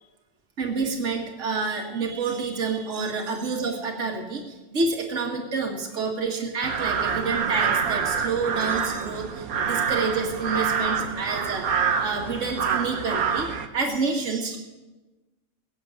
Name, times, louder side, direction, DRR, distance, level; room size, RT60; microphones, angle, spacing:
voice 1, 0.6-4.4 4.7-14.6, right 4 dB, 50° right, 0 dB, 2.1 m, -28 dB
sound 1, 6.6-13.7, right 6 dB, 70° right, 1.5 m, -26 dB
18.0 x 8.3 x 9.1 m, 1.1 s
omnidirectional pair, 1.6 m